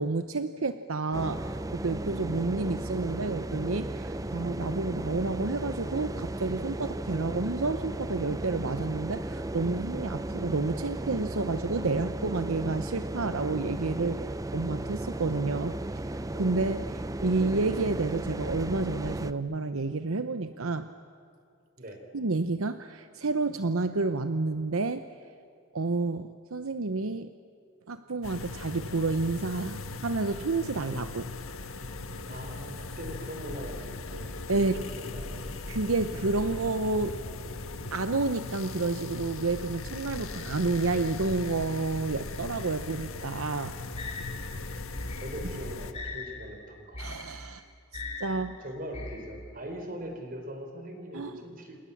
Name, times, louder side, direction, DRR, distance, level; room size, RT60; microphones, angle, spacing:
voice 1, 0.0-14.2 14.5-15.8 16.0-20.9 22.1-25.1 25.7-27.3 27.9-31.3 34.5-34.8 35.7-37.2 37.9-43.8 47.0-47.6 47.9-48.6 51.1-51.3, right 3 dB, 80° right, 10 dB, 0.9 m, -30 dB
sound 1, 1.1-19.3, right 1 dB, 15° right, 0.6 m, -35 dB
sound 2, 28.2-45.9, left 3 dB, 75° left, 1.5 m, -39 dB
voice 2, 32.2-34.4 34.7-35.6 44.3-44.9 45.2-47.0 48.4-51.8, equal, 45° right, 4 dB, 4.7 m, -41 dB
sound 3, 43.4-49.7, left 3 dB, 30° left, 3.4 m, -41 dB
29.0 x 28.5 x 7.3 m, 2.3 s
head